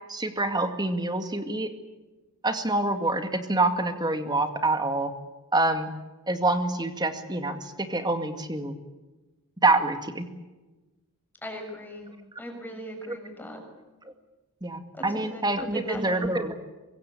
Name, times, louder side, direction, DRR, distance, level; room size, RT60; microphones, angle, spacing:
voice 1, 0.1-1.7 2.4-5.1 5.5-5.9 6.3-8.7 9.6-10.3 13.1-13.2 14.6-16.6, right 2 dB, 20° right, 7 dB, 2.1 m, -26 dB
voice 2, 11.4-12.1 12.4-13.6 14.9-15.1 15.3-15.4 15.7-16.2, equal, 10° left, 2 dB, 6.6 m, -38 dB
25.0 x 22.0 x 8.6 m, 1.1 s
head